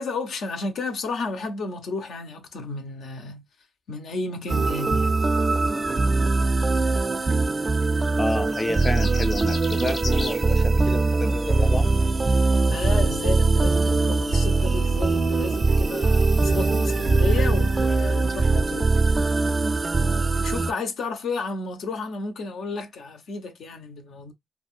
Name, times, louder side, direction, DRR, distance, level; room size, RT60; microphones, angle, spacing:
voice 1, 0.0-3.4 3.9-5.2 12.7-18.9 20.4-24.3, left 3 dB, 75° left, 0.7 m, -32 dB
sound 1, 4.5-20.7, right 3 dB, 35° right, 0.3 m, -21 dB
voice 2, 8.2-11.9, left 2 dB, 25° left, 0.4 m, -29 dB
sound 2, 8.3-10.4, left 2 dB, 45° left, 1.3 m, -35 dB
3.4 x 2.2 x 2.4 m
supercardioid pair, 50°, 0 cm